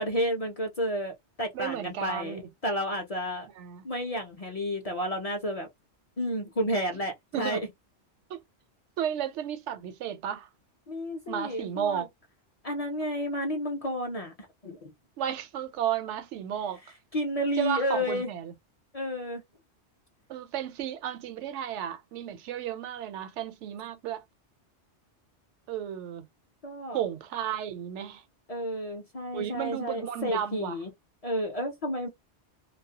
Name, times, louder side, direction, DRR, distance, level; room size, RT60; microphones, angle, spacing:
voice 1, 0.0-3.5 3.8-5.7 6.2-7.7 10.9-12.1 12.6-14.3 14.6-14.9 17.1-18.3 18.9-19.4 26.6-27.0 28.5-30.9 31.2-32.1, equal, 45° left, 0.5 m, -31 dB
voice 2, 1.5-2.5 3.6-3.8 7.3-7.6 8.3-8.4 9.0-10.5 11.3-12.1 15.2-16.8 17.6-18.5 20.3-24.2 25.7-26.3 26.9-28.2 29.3-30.8, right 10 dB, 90° right, 0.9 m, -33 dB
2.3 x 2.1 x 2.6 m
omnidirectional pair, 1.2 m